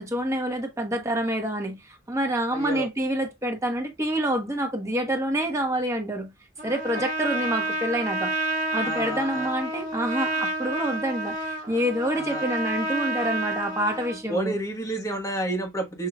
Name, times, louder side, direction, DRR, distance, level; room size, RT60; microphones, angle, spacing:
voice 1, 0.0-6.3 6.6-8.3 8.7-14.6, right 1 dB, 15° right, 1.2 m, -27 dB
voice 2, 2.5-2.9 8.8-9.5 12.1-12.5 14.3-16.1, right 2 dB, 20° left, 1.2 m, -30 dB
Trumpet, 6.6-14.2, right 2 dB, 45° right, 1.7 m, -30 dB
6.6 x 2.8 x 2.3 m
head